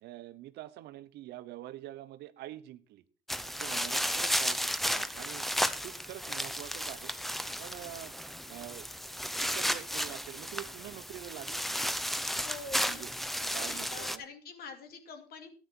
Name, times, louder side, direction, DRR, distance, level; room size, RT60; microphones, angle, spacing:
voice 1, 0.0-3.0 3.4-4.6 4.9-5.5 5.8-7.1 7.6-8.2 8.5-8.9 9.4-11.8 12.8-14.2, right 14 dB, 80° right, 13 dB, 0.9 m, -46 dB
sound 1, 3.3-14.2, equal, ahead, 0.8 m, -33 dB
voice 2, 12.4-13.0 13.5-15.5, left 4 dB, 65° left, 6 dB, 2.7 m, -45 dB
13.0 x 9.3 x 4.5 m, 0.38 s
cardioid pair, 110°, 17 cm